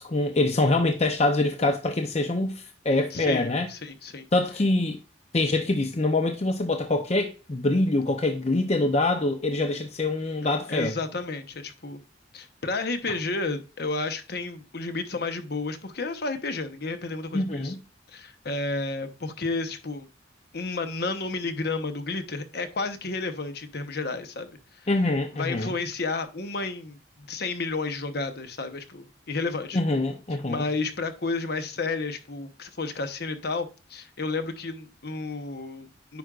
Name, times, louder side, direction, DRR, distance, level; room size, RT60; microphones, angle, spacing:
voice 1, 0.0-3.7 4.3-5.0 5.3-10.9 17.3-17.8 24.9-25.7 29.7-30.6, left 2 dB, 35° left, 0.7 m, -25 dB
voice 2, 3.1-4.3 10.7-12.0 12.3-17.7 18.1-20.1 20.5-24.5 25.3-29.8 30.5-36.2, left 3 dB, 55° left, 0.9 m, -31 dB
9.4 x 5.2 x 2.5 m
head